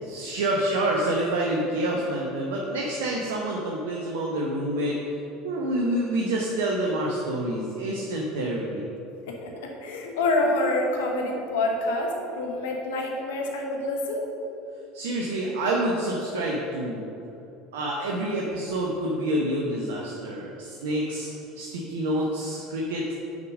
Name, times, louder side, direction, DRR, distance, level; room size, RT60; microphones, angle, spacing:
voice 1, 0.0-5.0 5.4-8.8 14.9-17.0 17.7-23.1, right 1 dB, 70° right, -2 dB, 0.9 m, -27 dB
voice 2, 9.3-14.2, left 2 dB, 70° left, 1 dB, 1.1 m, -27 dB
6.7 x 5.1 x 6.3 m, 3.0 s
hypercardioid pair, 70°, 0 cm